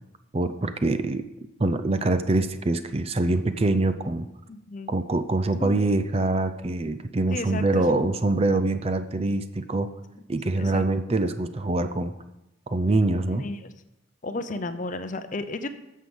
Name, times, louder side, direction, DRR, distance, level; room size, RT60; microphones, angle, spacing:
voice 1, 0.3-1.3 1.6-4.3 4.9-9.9 10.3-12.1 12.7-13.5, right 2 dB, 30° right, 10 dB, 0.5 m, -24 dB
voice 2, 4.5-5.0 5.6-6.0 7.3-8.1 10.6-10.8 13.4-13.6 14.2-15.7, left 2 dB, 40° left, 10 dB, 0.6 m, -33 dB
9.7 x 6.5 x 7.1 m, 0.93 s
head